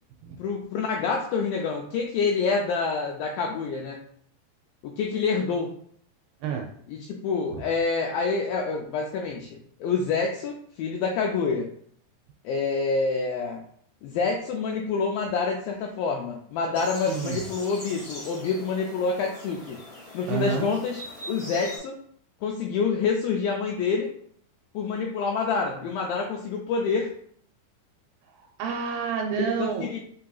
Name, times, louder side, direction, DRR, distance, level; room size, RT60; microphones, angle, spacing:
voice 1, 0.4-4.0 4.8-5.7 6.9-11.7 12.4-13.7 14.0-19.8 20.1-21.0 21.3-22.0 22.4-24.1 24.7-27.1 29.4-30.0, left 5 dB, 85° left, 0 dB, 2.0 m, -27 dB
sound 1, 16.7-21.8, left 1 dB, 50° left, 1.0 m, -42 dB
voice 2, 17.1-17.4 20.3-20.7 28.3-29.9, right 6 dB, 80° right, 1 dB, 2.5 m, -29 dB
7.4 x 2.8 x 2.3 m, 0.62 s
omnidirectional pair, 4.5 m